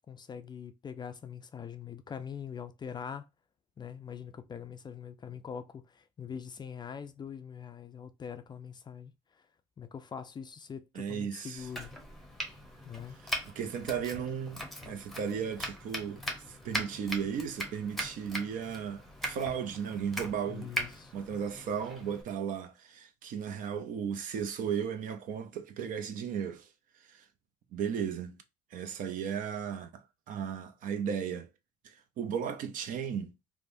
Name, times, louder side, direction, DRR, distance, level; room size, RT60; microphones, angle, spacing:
voice 1, 0.1-3.3 3.8-9.1 9.8-11.9 12.8-13.2 20.5-21.1, left 7 dB, 25° left, 0.4 m, -43 dB
voice 2, 10.9-11.7 13.2-16.2 16.5-20.7 21.1-26.7 27.0-27.2 27.7-28.4 28.7-31.5 31.8-33.3, right 7 dB, 55° right, 0.6 m, -35 dB
Domestic sounds home sounds, 11.6-22.2, equal, ahead, 0.9 m, -40 dB
3.2 x 2.1 x 2.6 m
supercardioid pair, 80°, 17 cm